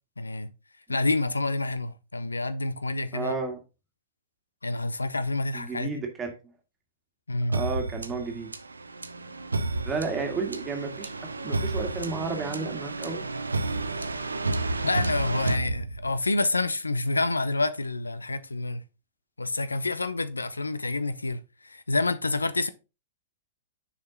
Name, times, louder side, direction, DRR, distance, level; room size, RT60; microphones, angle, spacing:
voice 1, 0.2-0.5 0.9-3.3 4.6-5.9 7.3-7.6 14.8-18.8 19.4-22.7, left 2 dB, 85° left, 0.7 m, -28 dB
voice 2, 3.1-3.6 5.5-6.3 7.5-8.5 9.9-11.1 11.4-13.2, right 4 dB, 20° right, 1.8 m, -32 dB
sound 1, 7.5-16.4, right 2 dB, 85° right, 0.7 m, -31 dB
6.6 x 5.2 x 3.9 m
figure-of-eight pair, 110°, 0 cm